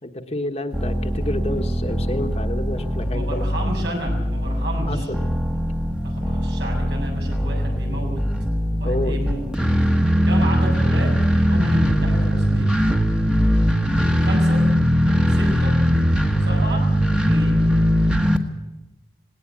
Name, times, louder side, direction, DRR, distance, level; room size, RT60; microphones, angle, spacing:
voice 1, 0.0-3.4 4.9-5.2 8.8-9.2, left 1 dB, 35° left, 5 dB, 1.4 m, -29 dB
sound 1, 0.7-18.4, equal, 5° right, 1.4 m, -20 dB
voice 2, 3.1-5.1 6.0-8.2 8.8-9.4 10.2-12.8 14.2-14.7 15.3-15.8 16.4-16.9 17.2-17.6, equal, 80° right, 1 dB, 7.2 m, -31 dB
19.0 x 18.0 x 8.6 m, 0.99 s
head